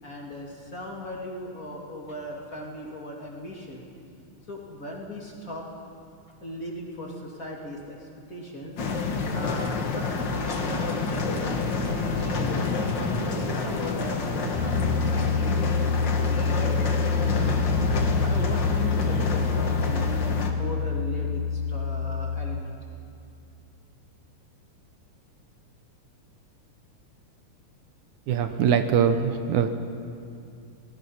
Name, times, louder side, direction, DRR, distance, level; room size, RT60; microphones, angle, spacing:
voice 1, 0.0-3.9 4.5-5.7 6.4-12.7 13.1-15.7 16.2-16.9 17.2-17.8 18.2-22.8, left 1 dB, 30° left, -2 dB, 2.6 m, -38 dB
sound 1, 8.8-20.5, left 3 dB, 45° left, 1.8 m, -28 dB
Piano, 14.5-22.6, left 5 dB, 85° left, 2.7 m, -27 dB
voice 2, 28.3-29.7, right 7 dB, 75° right, 8 dB, 2.3 m, -22 dB
29.5 x 19.0 x 5.7 m, 2.5 s
omnidirectional pair, 3.6 m